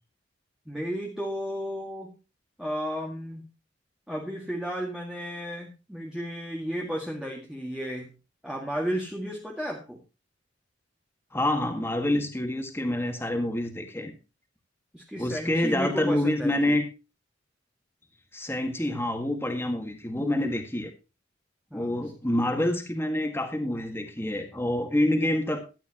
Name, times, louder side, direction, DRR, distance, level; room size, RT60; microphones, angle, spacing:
voice 1, 0.7-2.2 2.6-3.4 4.1-8.1 8.4-10.0 14.9-16.8 21.7-22.0, equal, 5° right, -2 dB, 1.9 m, -33 dB
voice 2, 11.3-14.1 15.2-16.8 18.3-20.9 21.7-25.6, left 1 dB, 15° left, 5 dB, 1.7 m, -27 dB
14.0 x 10.0 x 2.9 m, 0.30 s
head